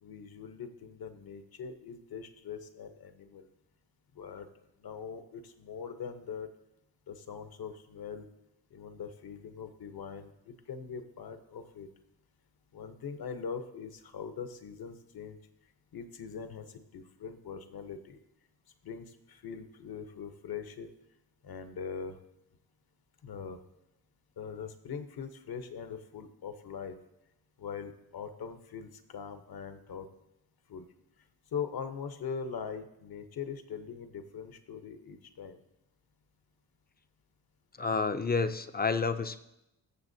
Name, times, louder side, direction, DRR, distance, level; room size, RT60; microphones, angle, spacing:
voice 1, 0.0-3.5 4.1-4.5 4.8-6.5 7.1-8.3 8.7-11.9 12.7-15.4 15.9-18.2 18.8-20.9 21.4-22.2 23.2-23.6 24.4-27.0 27.6-30.1 30.7-30.9 31.5-35.6, left 6 dB, 65° left, 8 dB, 1.0 m, -42 dB
voice 2, 37.8-39.4, left 4 dB, 25° left, 10 dB, 0.5 m, -29 dB
21.0 x 7.0 x 2.7 m, 0.88 s
cardioid pair, 85°, 39 cm